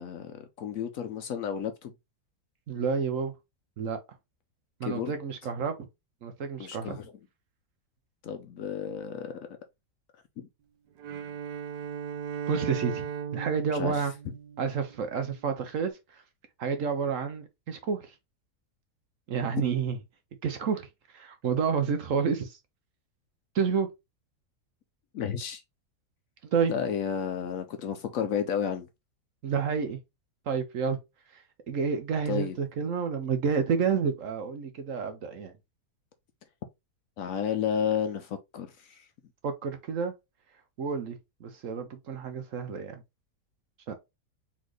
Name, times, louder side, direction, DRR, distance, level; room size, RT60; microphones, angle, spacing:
voice 1, 0.0-1.9 4.8-5.1 6.6-7.1 8.2-9.5 10.4-10.5 13.7-14.0 25.1-25.6 26.7-28.9 32.3-32.6 37.2-39.0, left 8 dB, 65° left, 0.9 m, -32 dB
voice 2, 2.7-3.3 3.8-4.0 4.8-5.8 6.2-7.0 12.5-13.1 13.3-14.1 14.6-15.9 16.6-18.1 19.3-20.0 20.4-20.9 21.1-22.6 23.5-23.9 26.4-26.7 29.4-30.0 30.5-31.0 31.3-35.5 39.4-40.1 40.8-43.0 43.9-44.0, right 6 dB, 60° right, 1.0 m, -29 dB
Bowed string instrument, 11.0-15.2, right 7 dB, 90° right, 1.2 m, -37 dB
4.1 x 3.6 x 3.1 m
omnidirectional pair, 1.7 m